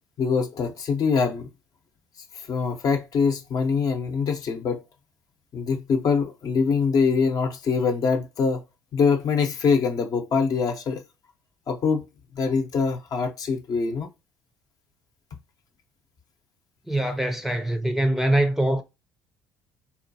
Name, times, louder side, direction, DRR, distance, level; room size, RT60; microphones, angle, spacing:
voice 1, 0.2-1.5 2.5-4.8 5.5-8.6 8.9-11.0 11.7-12.0 12.3-14.1, left 5 dB, 50° left, 0.7 m, -24 dB
voice 2, 16.9-18.8, right 1 dB, 5° right, 0.5 m, -23 dB
4.2 x 2.2 x 2.7 m
supercardioid pair, 75°, 8 cm